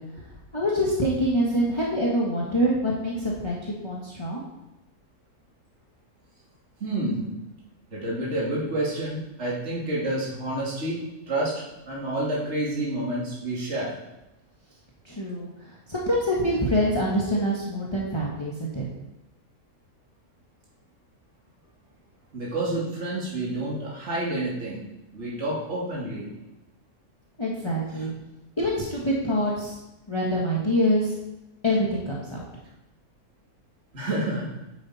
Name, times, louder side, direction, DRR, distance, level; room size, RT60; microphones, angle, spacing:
voice 1, 0.5-4.4 15.0-18.8 27.4-28.1 28.6-29.8 30.1-31.1 31.6-32.4, equal, 20° left, -5 dB, 1.6 m, -25 dB
voice 2, 6.8-7.2 7.9-11.0 11.3-14.0 22.3-24.8 25.1-26.3 27.9-28.1 33.9-34.5, right 1 dB, 50° right, -6 dB, 2.8 m, -29 dB
9.8 x 8.3 x 4.3 m, 0.99 s
omnidirectional pair, 1.5 m